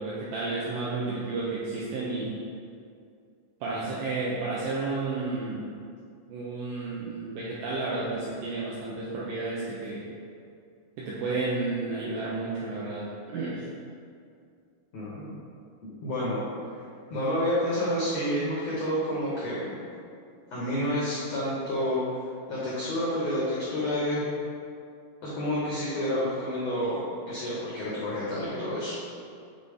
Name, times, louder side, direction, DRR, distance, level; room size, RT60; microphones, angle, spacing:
voice 1, 0.0-2.4 3.6-5.7 6.3-10.1 11.0-13.7, right 3 dB, 80° right, -6 dB, 1.9 m, -32 dB
voice 2, 14.9-15.3 16.0-16.4 17.1-19.7 20.5-22.0 22.5-24.2 25.2-29.0, equal, 85° left, -8 dB, 1.5 m, -29 dB
6.8 x 4.1 x 3.5 m, 2.3 s
omnidirectional pair, 4.5 m